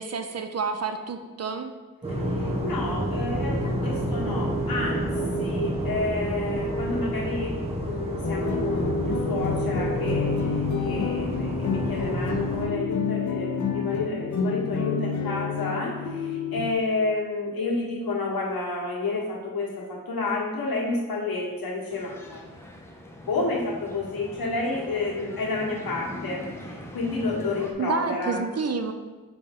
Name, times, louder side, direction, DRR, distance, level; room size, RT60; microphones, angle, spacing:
voice 1, 0.0-1.7 27.8-28.9, right 5 dB, 45° right, 7 dB, 0.5 m, -29 dB
sound 1, 2.0-12.7, right 1 dB, 15° right, 1.0 m, -29 dB
voice 2, 2.1-22.4 23.3-28.4, left 3 dB, 80° left, -3 dB, 1.5 m, -30 dB
sound 2, 8.2-16.7, left 6 dB, 55° left, 0.6 m, -29 dB
sound 3, 21.9-27.7, left 1 dB, 5° left, 0.7 m, -41 dB
6.1 x 3.2 x 5.3 m, 1.3 s
wide cardioid pair, 135°, 35 cm